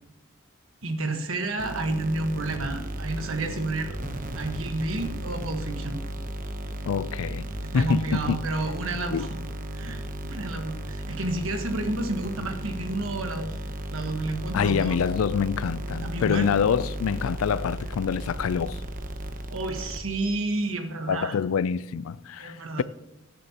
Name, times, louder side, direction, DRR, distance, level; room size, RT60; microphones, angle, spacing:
voice 1, 0.8-4.0 4.3-6.0 7.7-9.4 9.7-13.6 13.9-15.0 16.0-16.5 19.5-21.4 22.4-22.8, right 2 dB, 75° right, 1.3 m, -30 dB
sound 1, 1.6-20.4, right 1 dB, 40° right, 0.9 m, -35 dB
voice 2, 6.9-7.4 7.7-8.4 9.1-9.3 14.5-18.8 21.1-22.8, left 7 dB, 80° left, 0.4 m, -26 dB
16.0 x 9.7 x 2.9 m
head